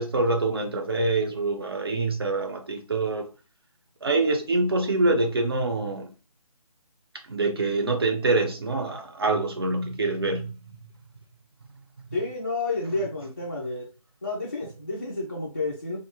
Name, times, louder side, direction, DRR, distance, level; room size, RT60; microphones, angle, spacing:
voice 1, 0.0-3.3 4.0-6.1 7.3-10.5, right 2 dB, 40° right, 0.4 m, -25 dB
voice 2, 12.1-13.8 14.2-16.0, left 2 dB, 25° left, 0.3 m, -30 dB
2.3 x 2.0 x 2.9 m
figure-of-eight pair, 155°, 19 cm